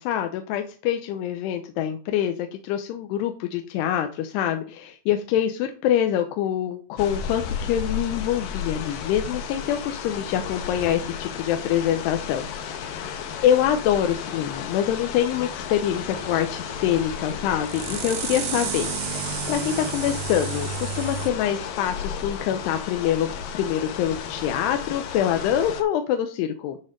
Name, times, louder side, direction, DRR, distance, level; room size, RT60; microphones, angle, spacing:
voice 1, 0.0-26.8, left 10 dB, 90° left, 6 dB, 2.8 m, -25 dB
sound 1, 7.0-25.8, left 7 dB, 75° left, 2.2 m, -33 dB
sound 2, 15.8-21.3, right 8 dB, 80° right, 1.8 m, -33 dB
9.9 x 4.3 x 5.1 m, 0.40 s
omnidirectional pair, 4.7 m